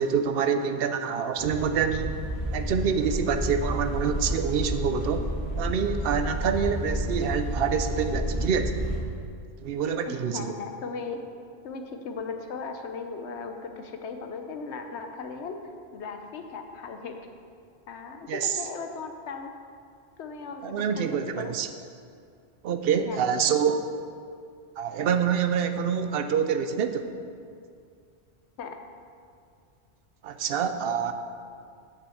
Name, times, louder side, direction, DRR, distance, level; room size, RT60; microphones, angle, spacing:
voice 1, 0.0-2.2 2.5-5.3 5.6-8.8 9.6-10.5 18.3-18.6 20.6-21.7 22.6-23.8 24.8-27.1 30.2-31.1, right 7 dB, 65° right, 8 dB, 0.8 m, -26 dB
sound 1, 1.4-9.0, equal, 70° left, 2.5 m, -31 dB
voice 2, 10.1-11.2 11.6-15.6 15.9-17.2 17.9-19.5 20.2-21.1 21.4-21.5 23.0-23.8 28.6-28.8, left 4 dB, 90° left, 5 dB, 1.0 m, -37 dB
6.5 x 5.6 x 7.1 m, 2.3 s
omnidirectional pair, 1.1 m